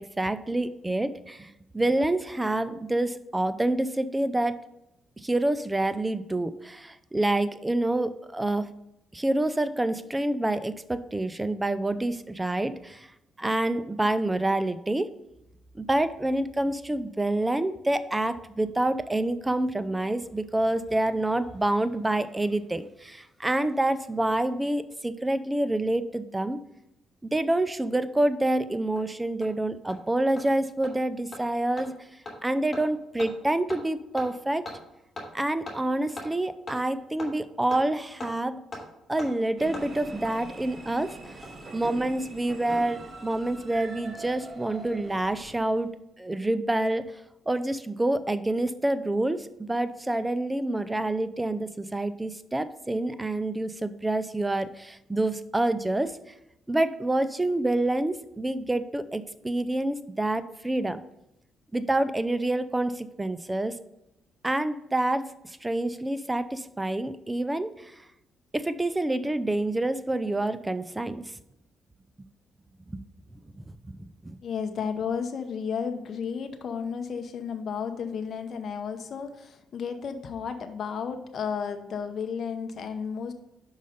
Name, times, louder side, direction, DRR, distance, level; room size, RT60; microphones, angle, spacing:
voice 1, 0.0-4.6 5.2-8.7 9.1-13.1 13.4-15.1 15.7-26.6 27.2-31.9 32.4-34.6 35.3-38.6 39.1-41.2 41.7-45.9 46.2-47.1 47.5-56.2 56.7-61.0 61.7-63.8 64.4-67.9 68.5-71.2 72.9-73.0 73.9-74.4, right 1 dB, 15° right, 13 dB, 0.5 m, -27 dB
Hammer, 28.5-28.6 29.0-29.1 29.4-29.5 29.9-30.0 30.4-30.5 30.8-30.9 31.3-31.4 31.8-31.9 32.3-32.4 32.7-32.8 33.2-33.3 33.7-33.8 34.2-34.3 34.7-34.8 35.2-35.3 35.7-35.8 36.2-36.3 36.7-36.8 37.2-37.3 37.7-37.8 38.2-38.3 38.7-38.8 39.2-39.3 39.7-39.9 40.2-40.3 41.3-41.7 41.9-42.0, left 2 dB, 30° left, 2.7 m, -38 dB
sound 1, 39.6-45.9, right 2 dB, 35° right, 1.0 m, -43 dB
voice 2, 74.4-83.3, left 6 dB, 55° left, 6 dB, 0.7 m, -33 dB
5.5 x 5.3 x 5.0 m, 0.87 s
cardioid pair, 90°, 0 cm